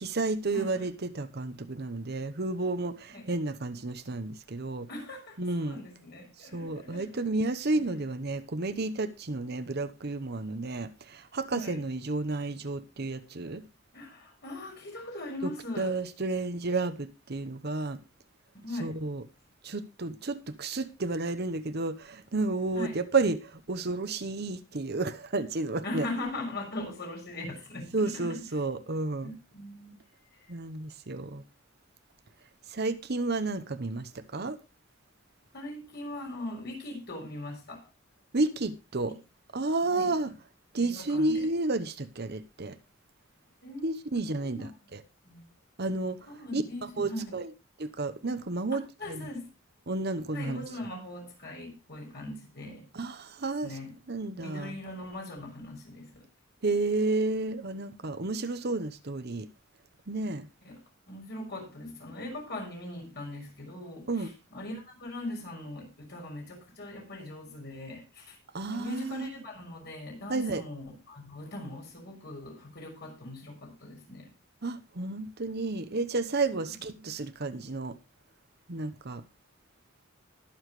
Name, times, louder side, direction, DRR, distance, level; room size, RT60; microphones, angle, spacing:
voice 1, 0.0-4.9 5.4-5.8 6.4-13.6 15.4-15.5 15.8-18.0 18.8-19.2 19.6-26.1 27.9-29.3 30.5-31.4 32.7-34.6 38.3-39.2 39.5-40.3 40.7-42.8 43.8-45.0 45.8-46.2 46.5-47.5 47.8-49.3 49.9-50.6 52.9-53.7 54.1-54.8 56.6-59.5 60.1-60.5 64.1-64.3 68.5-69.3 70.3-70.6 74.6-77.9 78.7-79.2, right 3 dB, 55° right, 1.0 m, -31 dB
voice 2, 0.5-0.9 3.1-3.3 4.9-7.3 7.8-8.0 11.5-11.8 13.9-15.9 18.6-18.9 22.7-23.0 25.8-28.4 29.2-30.0 30.3-30.5 35.5-37.8 39.1-39.2 39.8-40.1 40.8-41.5 43.6-44.0 44.4-44.7 45.2-45.4 46.3-47.2 48.7-49.5 50.3-52.9 53.6-53.9 54.4-56.3 60.6-60.8 61.1-68.4 68.6-74.3, left 1 dB, 55° left, 6.5 m, -40 dB
21.0 x 7.2 x 3.2 m
head